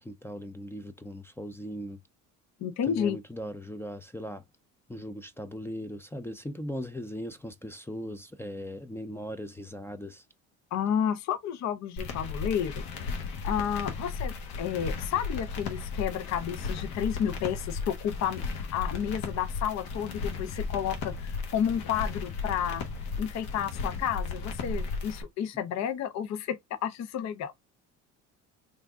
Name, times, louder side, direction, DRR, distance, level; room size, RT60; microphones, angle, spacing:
voice 1, 0.0-2.0 2.9-4.4 4.9-10.2, equal, 5° left, 0.4 m, -39 dB
voice 2, 2.6-3.2 10.7-12.8 13.1-22.8 23.2-27.5, left 9 dB, 45° left, 0.6 m, -31 dB
sound 1, 12.0-25.2, left 4 dB, 70° left, 1.1 m, -35 dB
3.4 x 2.6 x 3.4 m
supercardioid pair, 80°, 37 cm